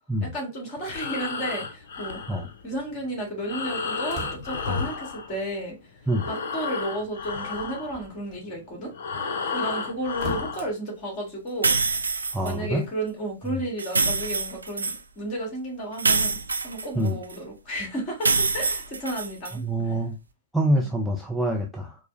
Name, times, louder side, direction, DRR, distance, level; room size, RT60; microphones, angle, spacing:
voice 1, 0.2-2.2 2.6-5.8 6.3-8.9 9.5-11.8 12.4-16.4 16.6-19.9 20.8-20.9, right 1 dB, 30° left, 1.8 m, -33 dB
Breathing, 0.8-5.8 6.0-10.7, left 5 dB, 60° left, 0.6 m, -32 dB
sound 1, 4.1-4.8 6.0-6.1 7.0-7.2 7.8-8.4 10.1-10.6, right 3 dB, 25° right, 1.1 m, -41 dB
sound 2, 11.6-12.5 13.8-15.0 16.0-17.4 18.2-19.5, right 4 dB, 75° right, 0.4 m, -25 dB
voice 2, 12.3-12.9 17.0-17.2 19.5-20.2 20.5-22.0, right 1 dB, ahead, 0.4 m, -25 dB
4.4 x 2.1 x 2.6 m
figure-of-eight pair, 110°, 0 cm